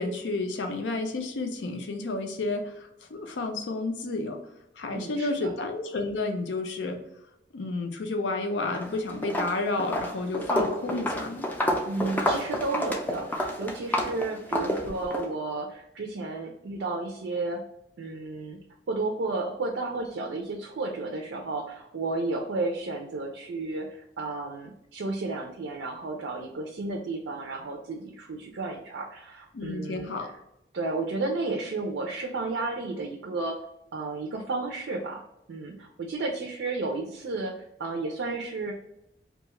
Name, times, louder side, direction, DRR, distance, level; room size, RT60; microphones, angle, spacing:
voice 1, 0.0-4.4 4.8-7.0 7.5-11.5 29.5-30.3, left 2 dB, 90° left, 5 dB, 0.5 m, -31 dB
voice 2, 4.9-5.5 11.8-17.6 18.0-18.6 18.9-30.1 30.7-33.6 33.9-35.2 35.5-38.7, right 3 dB, 90° right, 2 dB, 0.4 m, -32 dB
Walk footsteps, 8.6-8.9 9.2-15.3, equal, 10° left, 0.3 m, -29 dB
2.4 x 2.3 x 2.9 m, 0.82 s
head